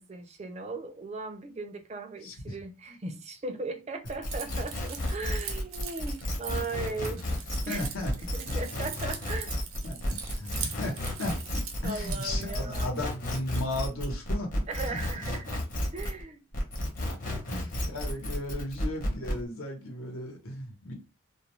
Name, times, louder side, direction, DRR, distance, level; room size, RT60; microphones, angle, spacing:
voice 1, 0.0-7.2 7.7-7.9 8.3-9.5 11.8-12.9 14.7-15.6 15.9-16.4 17.3-17.5, right 3 dB, 30° right, 0.4 m, -38 dB
voice 2, 2.2-2.5 2.9-3.0 7.7-8.1 8.5-8.6 9.8-15.0 17.1-20.9, left 1 dB, 90° left, 1.0 m, -36 dB
sound 1, 4.0-16.2 16.5-19.4, left 1 dB, 40° left, 0.8 m, -33 dB
Keys jangling, 4.3-12.4, right 7 dB, 90° right, 0.6 m, -42 dB
2.4 x 2.2 x 3.0 m
head